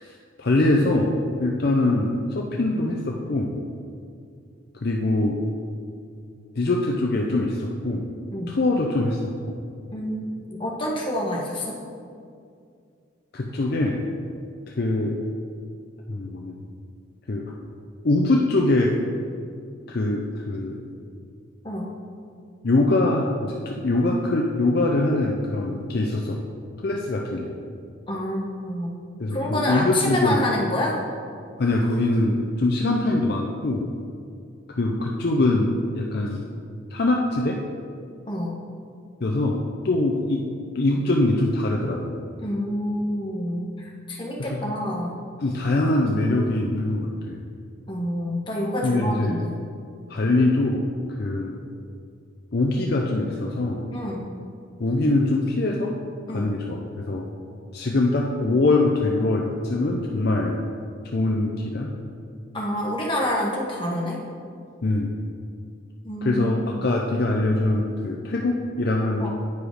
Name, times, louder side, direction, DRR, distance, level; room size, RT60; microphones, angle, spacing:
voice 1, 0.0-3.6 4.7-5.4 6.6-8.1 8.5-9.6 13.3-14.0 14.8-15.2 16.1-16.6 17.3-17.5 18.0-18.9 19.9-20.8 22.6-26.4 26.8-27.5 29.2-30.4 31.6-33.9 34.7-36.4 36.9-37.6 39.2-40.5 40.7-42.2 44.4-44.7 45.4-47.4 48.8-49.4 50.1-50.9 51.2-51.5 52.5-53.9 54.8-56.0 56.3-57.3 57.7-60.6 61.1-61.9 64.8-65.1 66.2-69.3, left 2 dB, 50° left, 0 dB, 0.5 m, -23 dB
voice 2, 9.9-11.8 21.6-21.9 28.1-28.9 29.3-31.0 38.3-38.5 42.4-45.2 47.9-49.6 53.9-54.3 56.3-56.5 62.5-64.2 66.0-66.4 66.8-66.9 69.2-69.3, left 1 dB, 25° left, -4 dB, 1.3 m, -28 dB
9.4 x 5.0 x 4.9 m, 2.4 s
head